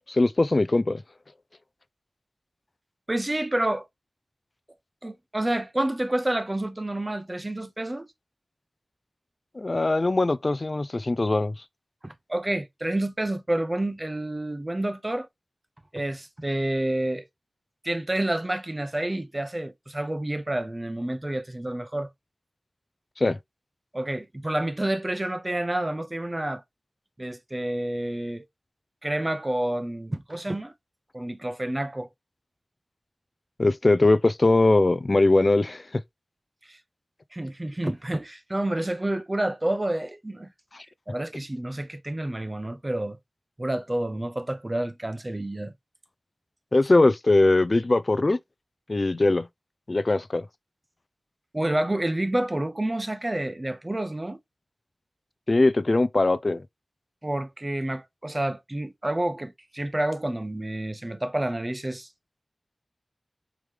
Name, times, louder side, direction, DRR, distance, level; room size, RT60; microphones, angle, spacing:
voice 1, 0.1-1.0 9.6-11.5 23.2-23.4 33.6-36.0 40.7-40.9 46.7-48.4 48.9-49.5 49.9-50.4 55.5-56.6, left 2 dB, 45° left, 0.3 m, -21 dB
voice 2, 3.1-3.9 5.0-8.1 12.0-15.3 15.9-17.2 17.8-22.1 23.9-26.6 27.2-28.4 29.0-30.7 31.1-32.1 36.7-36.8 37.3-40.5 41.1-43.2 43.6-45.7 51.5-54.4 57.2-62.1, right 1 dB, 30° right, 0.7 m, -29 dB
4.8 x 3.1 x 3.5 m
wide cardioid pair, 70°, 0 cm